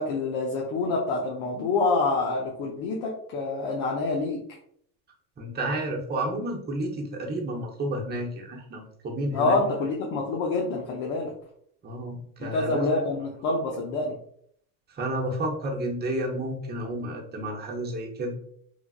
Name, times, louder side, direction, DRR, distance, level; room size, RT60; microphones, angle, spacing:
voice 1, 0.0-4.4 9.3-11.3 12.4-14.2, left 3 dB, 85° left, -1 dB, 0.7 m, -27 dB
voice 2, 5.4-9.6 11.8-12.9 14.9-18.3, right 1 dB, 25° right, 0 dB, 0.7 m, -31 dB
3.2 x 2.4 x 2.3 m, 0.67 s
supercardioid pair, 110°, 42 cm